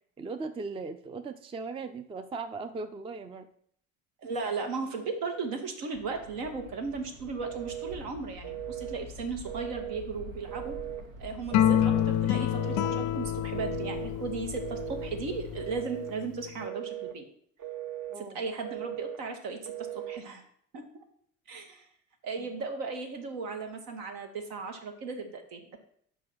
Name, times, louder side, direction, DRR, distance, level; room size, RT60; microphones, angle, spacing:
voice 1, 0.2-3.5 18.1-18.4, right 4 dB, 15° right, 10 dB, 0.4 m, -38 dB
voice 2, 4.2-10.8 11.2-17.2 18.2-20.4 20.7-20.8 21.5-21.9 22.2-25.6, right 4 dB, 60° right, 5 dB, 1.3 m, -36 dB
sound 1, 5.9-15.8, left 1 dB, 80° right, 0.9 m, -46 dB
Telephone, 7.4-8.0 8.4-9.0 9.5-10.0 10.5-11.0 11.5-12.1 12.5-13.1 13.5-14.1 14.5-15.1 15.6-16.1 16.6-17.2 17.6-18.2 18.6-19.2 19.6-20.2, right 12 dB, 45° right, 1.0 m, -38 dB
sound 2, 11.5-16.0, left 11 dB, 50° left, 0.4 m, -28 dB
5.4 x 4.6 x 6.1 m, 0.64 s
figure-of-eight pair, 50°, 39 cm